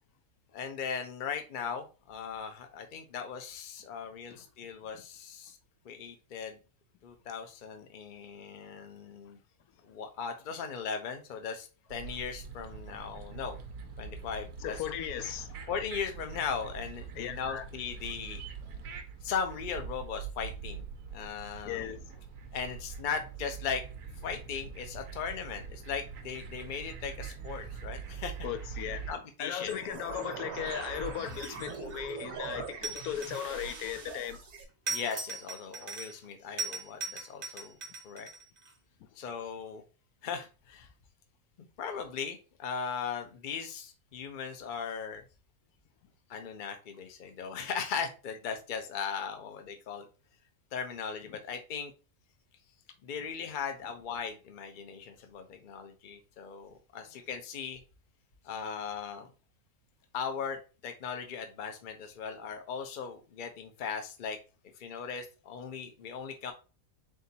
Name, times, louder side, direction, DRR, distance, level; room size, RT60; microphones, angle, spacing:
voice 1, 0.5-5.6 5.8-6.6 7.0-9.4 9.8-13.6 14.0-14.8 15.7-18.4 19.2-20.8 21.1-21.8 22.5-23.8 24.2-28.4 29.1-29.7 34.9-37.8 38.0-38.3 39.2-39.8 40.2-40.9 41.8-45.2 46.3-50.1 50.7-51.9 53.0-57.8 58.4-59.3 60.1-64.4 64.8-66.5, left 6 dB, 45° left, 0.7 m, -38 dB
sound 1, 11.9-29.1, right 6 dB, 85° right, 1.2 m, -44 dB
voice 2, 14.6-15.6 17.1-17.7 21.6-22.2 28.4-29.1 29.4-34.4 51.3-51.4, left 10 dB, 85° left, 1.1 m, -37 dB
sound 2, 29.6-34.6, right 5 dB, 70° right, 1.4 m, -42 dB
sound 3, 31.3-31.9 32.8-34.1 34.9-36.3 36.6-38.7, right 3 dB, 45° right, 0.9 m, -39 dB
4.0 x 3.7 x 2.7 m
omnidirectional pair, 1.5 m